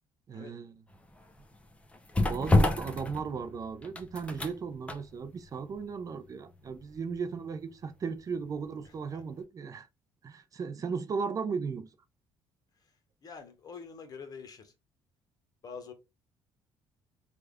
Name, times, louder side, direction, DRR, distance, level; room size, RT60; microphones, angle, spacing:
voice 1, 0.3-0.8 2.2-9.9 10.2-11.9, right 5 dB, 40° right, 0.5 m, -36 dB
sound 1, 0.9-8.9 9.2-9.3, left 2 dB, 15° left, 0.7 m, -31 dB
voice 2, 13.2-14.7 15.6-15.9, left 5 dB, 45° left, 0.9 m, -45 dB
3.3 x 2.4 x 3.4 m
supercardioid pair, 85°, 9 cm